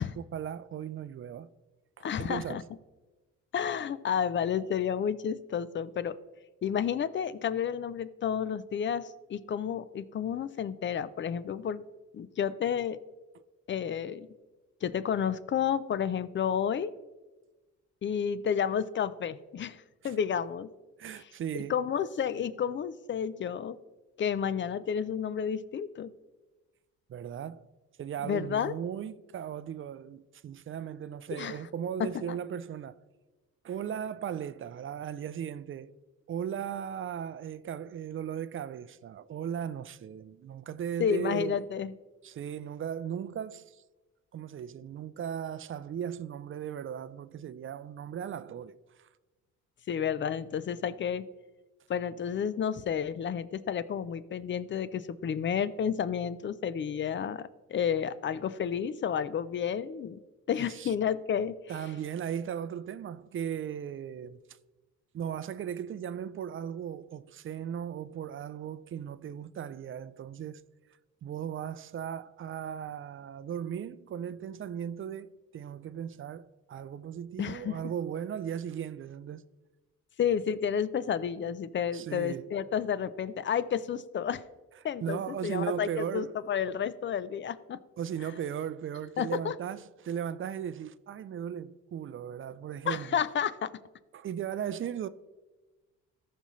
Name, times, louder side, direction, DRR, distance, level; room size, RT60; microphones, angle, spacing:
voice 1, 0.0-1.5 2.0-2.6 20.0-20.1 21.0-21.7 27.1-27.7 28.0-33.0 33.6-36.0 36.3-41.6 42.2-43.8 44.3-49.1 60.6-60.9 61.7-64.4 65.1-70.6 71.2-79.4 81.9-82.5 85.0-86.3 88.0-93.2 94.1-95.1, right 9 dB, 45° right, 0.4 m, -37 dB
voice 2, 2.0-2.6 3.5-6.2 6.6-11.8 12.1-13.0 13.7-14.3 14.8-16.9 18.0-20.7 21.1-21.3 21.7-23.8 24.2-26.1 28.2-28.7 31.3-31.6 32.0-32.4 41.0-41.9 49.9-51.2 51.9-60.2 60.5-61.6 77.4-77.8 80.2-84.4 84.8-87.8 89.2-89.5 92.9-93.7, left 8 dB, 40° left, 0.5 m, -31 dB
14.5 x 5.6 x 3.1 m
cardioid pair, 90°, 30 cm